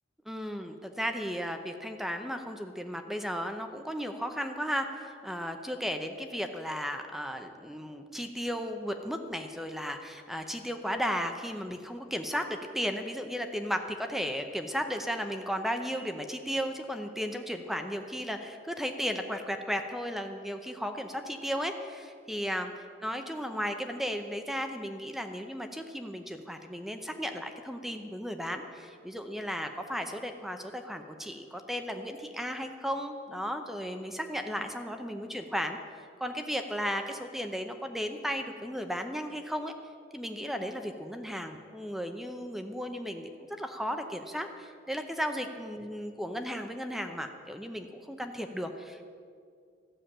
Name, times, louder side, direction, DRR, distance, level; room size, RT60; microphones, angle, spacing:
voice 1, 0.3-22.7 23.0-35.8 36.2-39.7 40.1-43.3 43.6-49.0, equal, ahead, 6 dB, 0.6 m, -35 dB
13.5 x 7.1 x 8.8 m, 2.2 s
head